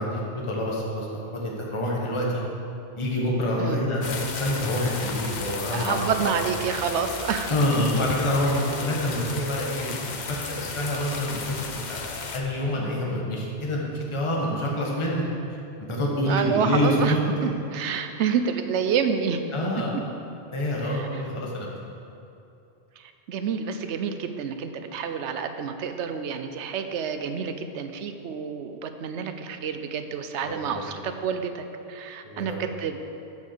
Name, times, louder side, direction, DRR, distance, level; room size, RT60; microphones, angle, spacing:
voice 1, 0.0-2.4 3.0-6.3 7.5-11.6 11.9-15.2 15.9-17.2 19.5-19.9 20.5-21.7 30.4-30.8 32.2-32.6, left 1 dB, 25° left, -3 dB, 1.2 m, -27 dB
sound 1, 4.0-12.4, left 4 dB, 50° left, 0.7 m, -34 dB
voice 2, 5.7-7.5 16.2-17.2 17.4-19.4 19.9-20.0 20.8-21.2 23.0-33.0, right 7 dB, 90° right, 8 dB, 0.9 m, -28 dB
7.4 x 6.4 x 6.7 m, 2.7 s
omnidirectional pair, 1.1 m